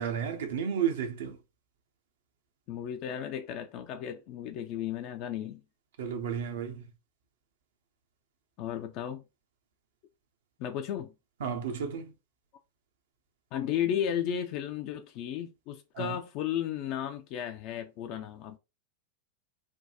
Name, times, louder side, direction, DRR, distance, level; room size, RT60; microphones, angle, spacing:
voice 1, 0.0-1.4 6.0-6.8 11.4-12.1 16.0-16.2, right 7 dB, 60° right, 0.7 m, -32 dB
voice 2, 2.7-5.6 8.6-9.2 10.6-11.1 13.5-18.6, left 9 dB, 40° left, 0.4 m, -34 dB
3.3 x 2.2 x 2.7 m
figure-of-eight pair, 90°, 0 cm